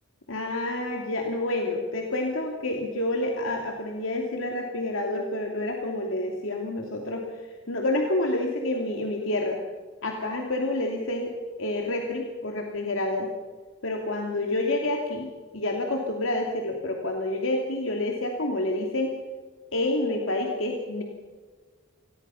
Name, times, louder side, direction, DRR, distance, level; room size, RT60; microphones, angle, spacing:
voice 1, 0.3-7.2 7.7-9.6 10.0-11.3 11.6-13.3 13.8-15.3 15.5-19.1 19.7-21.0, left 1 dB, 75° left, 1 dB, 2.8 m, -28 dB
29.0 x 21.0 x 5.8 m, 1.4 s
head